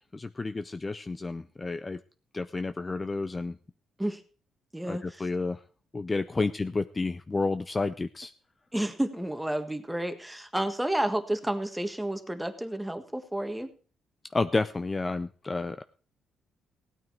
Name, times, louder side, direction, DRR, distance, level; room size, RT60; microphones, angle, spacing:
voice 1, 0.1-2.0 2.3-3.6 4.9-5.6 5.9-8.3 14.3-15.8, left 3 dB, 25° left, 11 dB, 0.5 m, -30 dB
voice 2, 4.7-5.2 6.4-6.5 8.7-13.7, right 1 dB, 5° right, 8 dB, 1.6 m, -31 dB
16.5 x 9.2 x 4.6 m, 0.39 s
cardioid pair, 90°, 0 cm